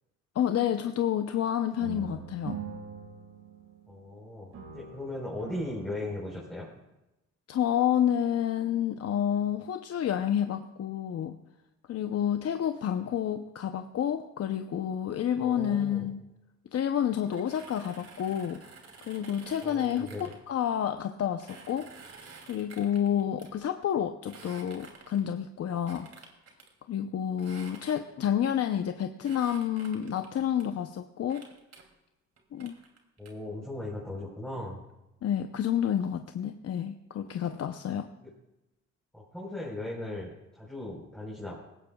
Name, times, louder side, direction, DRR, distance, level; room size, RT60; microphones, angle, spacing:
voice 1, 0.3-2.6 7.5-11.4 11.9-16.2 16.7-21.9 22.5-26.1 26.9-31.4 32.5-32.8 35.2-38.1, left 9 dB, 55° left, 7 dB, 0.7 m, -29 dB
sound 1, 1.8-4.2 4.5-6.8, right 7 dB, 75° right, 5.3 m, -43 dB
voice 2, 3.9-6.7 15.4-16.1 19.6-20.3 33.2-34.8 39.1-41.5, left 1 dB, ahead, -5 dB, 4.1 m, -38 dB
sound 2, 17.2-20.4 21.4-23.5 24.2-25.3 25.9-26.7 27.4-28.3 29.2-30.6 31.3-31.8 32.4-33.3, right 4 dB, 55° right, 2.8 m, -50 dB
19.5 x 16.5 x 2.3 m, 0.93 s
cardioid pair, 90°, 30 cm